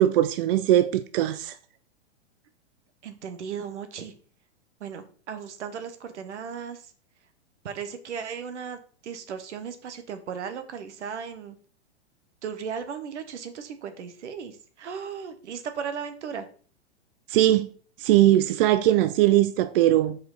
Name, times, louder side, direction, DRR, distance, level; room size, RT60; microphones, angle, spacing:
voice 1, 0.0-1.5 17.3-17.7 18.0-20.2, right 13 dB, 55° right, 0.4 m, -20 dB
voice 2, 3.0-4.1 4.8-6.9 7.6-11.6 12.4-16.5, right 7 dB, 80° right, 1.1 m, -36 dB
5.1 x 4.8 x 3.9 m
hypercardioid pair, 130°, 34 cm